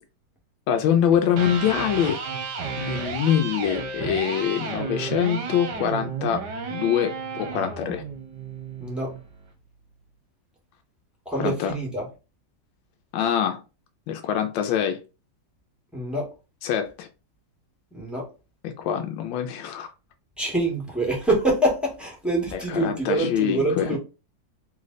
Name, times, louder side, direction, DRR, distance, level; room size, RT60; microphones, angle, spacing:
voice 1, 0.7-2.2 2.8-8.0 11.4-11.7 13.1-13.6 14.1-15.0 16.6-17.1 18.6-19.9 22.5-23.9, left 9 dB, 90° left, 1.3 m, -24 dB
Electric guitar, 1.2-9.3, right 5 dB, 65° right, 1.4 m, -32 dB
voice 2, 8.8-9.1 11.2-12.1 15.9-16.3 17.9-18.3 20.4-24.0, right 2 dB, ahead, 1.3 m, -25 dB
3.3 x 3.2 x 3.9 m
omnidirectional pair, 2.0 m